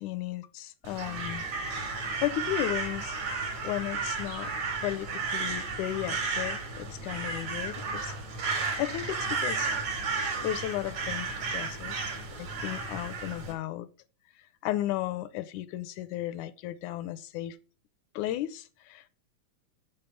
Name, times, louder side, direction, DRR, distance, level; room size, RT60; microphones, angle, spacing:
voice 1, 0.0-1.4 2.2-3.2 3.6-4.5 4.8-8.1 8.8-9.8 10.4-13.9 14.6-17.6 18.2-19.1, left 14 dB, 85° left, 2.1 m, -34 dB
Crow, 0.8-13.5, right 4 dB, 75° right, 3.5 m, -33 dB
8.4 x 3.9 x 6.8 m
omnidirectional pair, 3.4 m